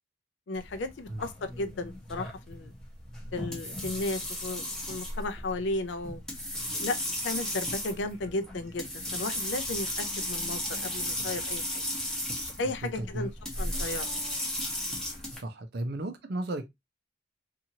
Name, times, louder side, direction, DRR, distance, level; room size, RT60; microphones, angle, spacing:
voice 1, 0.5-2.7 3.3-6.2 6.7-7.0 7.2-11.8 12.6-13.3 13.6-14.2, left 2 dB, 65° left, 0.4 m, -34 dB
sound 1, 0.6-15.4, left 1 dB, 5° left, 0.8 m, -35 dB
voice 2, 13.0-13.3 15.4-16.7, right 1 dB, 55° right, 0.5 m, -34 dB
2.8 x 2.5 x 2.7 m
head